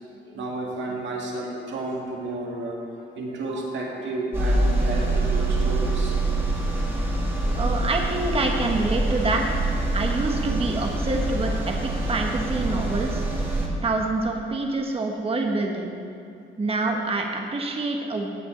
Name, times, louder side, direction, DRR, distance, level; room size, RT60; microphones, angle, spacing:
voice 1, 0.2-6.2 9.9-10.0, right 2 dB, 70° right, -2 dB, 2.1 m, -32 dB
sound 1, 4.3-13.7, right 2 dB, 10° right, 2.2 m, -25 dB
voice 2, 7.5-9.6 9.9-13.2 13.8-15.9 16.6-18.3, right 2 dB, 30° right, 2 dB, 1.3 m, -26 dB
16.0 x 8.6 x 3.9 m, 2.5 s
cardioid pair, 90°, 20 cm